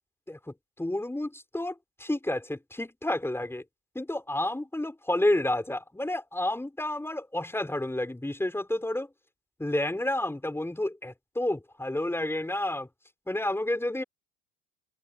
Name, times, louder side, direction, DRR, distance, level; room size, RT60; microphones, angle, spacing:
voice 1, 0.3-3.6 4.0-9.1 9.6-12.9 13.3-14.0, left 1 dB, 5° left, 5.3 m, -30 dB
hypercardioid pair, 70°, 38 cm